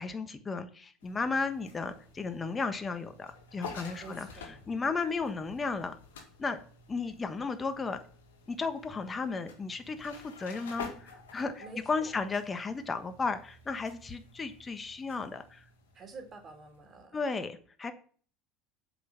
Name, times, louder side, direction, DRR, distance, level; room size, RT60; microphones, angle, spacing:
voice 1, 0.0-4.3 4.7-6.6 6.9-8.0 8.5-15.6 17.1-17.9, left 4 dB, 25° left, 8 dB, 1.3 m, -34 dB
sound 1, 1.0-17.0, left 4 dB, 85° left, 1.9 m, -50 dB
voice 2, 4.0-4.6 11.6-12.3 15.9-17.2, right 4 dB, 35° right, 4 dB, 3.1 m, -48 dB
7.8 x 5.5 x 6.1 m, 0.43 s
hypercardioid pair, 80°, 0 cm